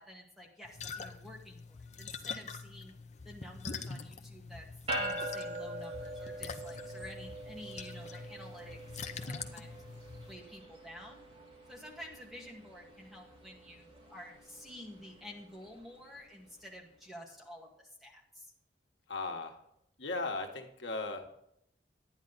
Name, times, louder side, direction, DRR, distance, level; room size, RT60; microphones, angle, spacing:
voice 1, 0.0-2.9 3.2-4.7 4.9-8.8 9.0-9.8 10.3-11.2 11.7-18.5, equal, ahead, -2 dB, 2.0 m, -50 dB
sound 1, 0.6-10.4, left 5 dB, 40° left, 0.8 m, -44 dB
sound 2, 4.9-16.5, right 1 dB, 35° right, 3.3 m, -44 dB
voice 2, 19.1-19.6 20.0-21.2, left 3 dB, 85° left, 4 dB, 1.5 m, -37 dB
10.0 x 10.0 x 4.1 m, 0.75 s
head